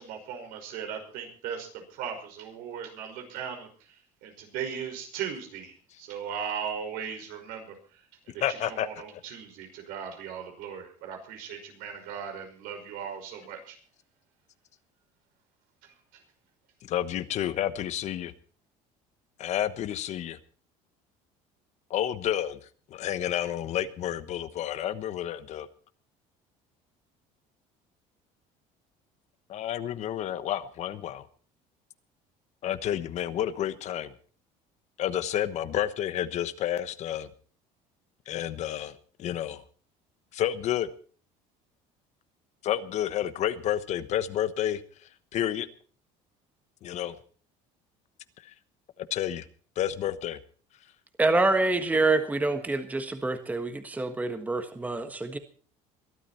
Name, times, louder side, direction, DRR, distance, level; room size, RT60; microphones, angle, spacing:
voice 1, 0.0-13.8 15.8-16.2, right 7 dB, 80° right, 5 dB, 5.5 m, -38 dB
voice 2, 8.4-8.9 16.9-18.3 19.4-20.4 21.9-22.6 22.9-25.7 29.5-31.3 32.6-34.1 35.0-37.3 38.3-39.6 40.3-40.9 42.6-44.8 45.3-45.7 46.8-47.2 48.4-48.5 49.0-49.5 49.8-50.4, left 11 dB, 50° left, 13 dB, 1.1 m, -30 dB
voice 3, 51.2-55.4, right 2 dB, 10° right, 8 dB, 1.4 m, -26 dB
22.5 x 12.5 x 4.4 m, 0.41 s
cardioid pair, 135°, 15 cm